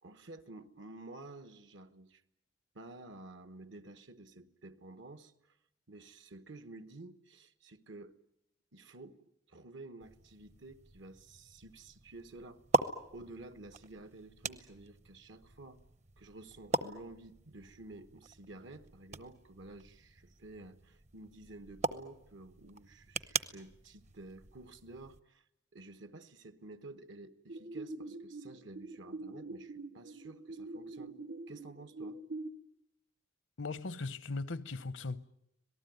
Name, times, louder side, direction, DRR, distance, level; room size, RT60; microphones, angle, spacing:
voice 1, 0.0-2.2 2.7-5.6 5.9-8.2 8.7-12.6 13.1-15.8 16.2-25.4 25.7-31.2 31.5-32.2, right 2 dB, 70° right, 1.3 m, -51 dB
sound 1, 10.0-25.2, right 3 dB, 35° right, 0.9 m, -41 dB
sound 2, 27.5-32.5, right 2 dB, 85° right, 1.7 m, -44 dB
voice 2, 33.6-35.2, left 3 dB, 70° left, 0.8 m, -38 dB
26.0 x 18.5 x 9.3 m
head